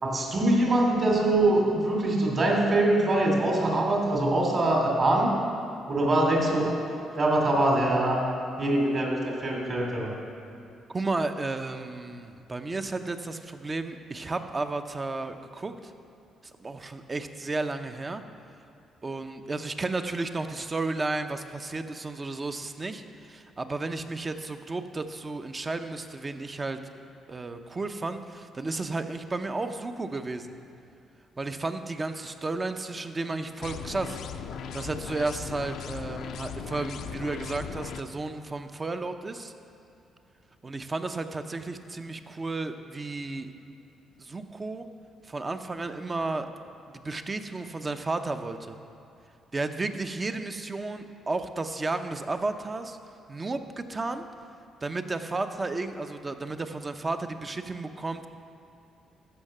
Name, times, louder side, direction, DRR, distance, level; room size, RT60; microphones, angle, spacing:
voice 1, 0.0-5.3 5.9-6.7 7.2-8.2 8.6-10.1, right 1 dB, 45° right, -1 dB, 3.0 m, -23 dB
voice 2, 10.9-15.9 16.6-18.2 19.0-23.0 23.3-26.8 27.3-30.5 31.4-34.2 34.7-39.5 40.6-43.5 44.2-44.9 45.2-46.5 46.9-48.8 49.5-53.0 53.3-54.3 54.8-58.3, right 3 dB, 25° right, 8 dB, 0.7 m, -33 dB
sound 1, 33.6-38.0, left 6 dB, 75° left, 0.6 m, -38 dB
15.0 x 5.8 x 6.6 m, 2.5 s
cardioid pair, 90°, 0 cm